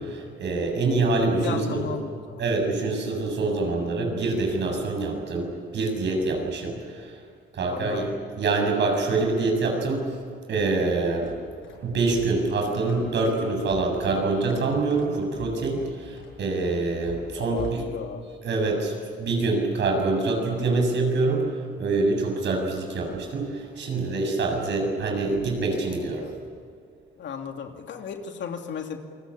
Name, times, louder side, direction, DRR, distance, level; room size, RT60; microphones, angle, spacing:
voice 1, 0.0-1.9 2.4-7.2 7.5-8.1 8.4-10.1 10.5-11.3 11.8-17.9 18.4-18.9 19.2-21.5 21.8-26.3, right 3 dB, 65° right, 2 dB, 7.4 m, -25 dB
voice 2, 1.4-2.5 7.6-8.1 17.4-18.3 27.2-29.0, left 7 dB, 65° left, 4 dB, 2.8 m, -35 dB
sound 1, 11.1-17.9, left 7 dB, 80° left, 6.8 m, -45 dB
28.0 x 21.0 x 8.7 m, 2.2 s
cardioid pair, 90°, 20 cm